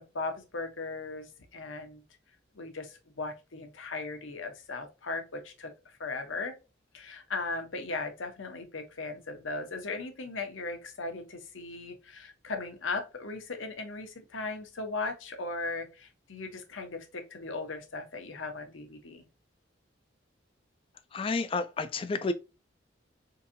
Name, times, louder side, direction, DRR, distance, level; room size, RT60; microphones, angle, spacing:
voice 1, 0.0-2.0 2.5-6.5 6.9-19.3, left 3 dB, 85° left, 0.9 m, -38 dB
voice 2, 21.1-22.3, left 3 dB, 30° left, 0.3 m, -30 dB
3.8 x 2.7 x 2.6 m
head